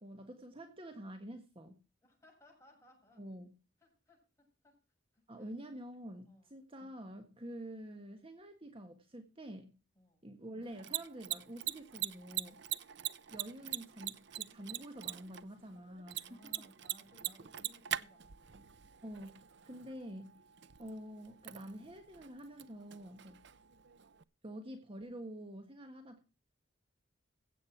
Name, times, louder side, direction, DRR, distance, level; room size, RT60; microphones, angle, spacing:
voice 1, 0.0-1.8 3.2-3.5 5.3-9.8 10.2-12.6 13.3-16.7 19.0-20.4 20.8-23.4 24.4-26.2, right 1 dB, 30° right, 1.5 m, -48 dB
voice 2, 2.0-3.2 3.8-4.8 5.1-5.5 6.3-6.5 9.9-10.3 12.7-12.9 16.2-18.6, left 1 dB, 15° left, 7.6 m, -63 dB
Mechanisms, 10.6-24.2, right 12 dB, 65° right, 0.6 m, -44 dB
16.0 x 7.8 x 4.6 m
head